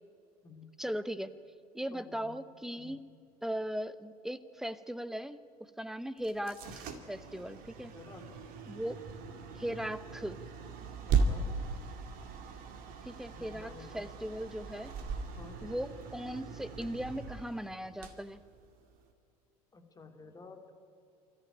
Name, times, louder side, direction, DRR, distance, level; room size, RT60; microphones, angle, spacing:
voice 1, 0.8-1.3 1.7-3.1 3.4-7.9 8.7-9.0 9.5-10.4 13.0-15.0 15.6-18.4, equal, ahead, 14 dB, 0.9 m, -38 dB
voice 2, 1.9-2.4 2.8-3.0 7.9-8.3 11.1-11.5 13.3-14.0 15.4-15.6 19.7-20.7, left 4 dB, 20° left, 4 dB, 2.7 m, -52 dB
sound 1, 6.2-19.1, right 4 dB, 50° right, 2.3 m, -38 dB
27.0 x 14.0 x 9.8 m, 2.4 s
figure-of-eight pair, 70°, 20 cm